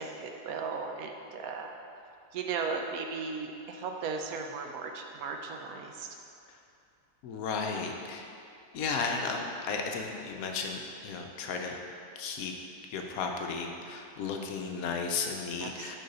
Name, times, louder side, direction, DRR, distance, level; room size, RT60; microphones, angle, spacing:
voice 1, 0.0-1.7 2.3-6.1 15.6-16.0, right 5 dB, 70° right, 3 dB, 1.0 m, -36 dB
voice 2, 7.2-8.3 8.7-11.8 12.2-12.5 12.9-16.0, left 4 dB, 70° left, 2 dB, 1.0 m, -34 dB
6.5 x 3.9 x 5.3 m, 2.6 s
omnidirectional pair, 1.7 m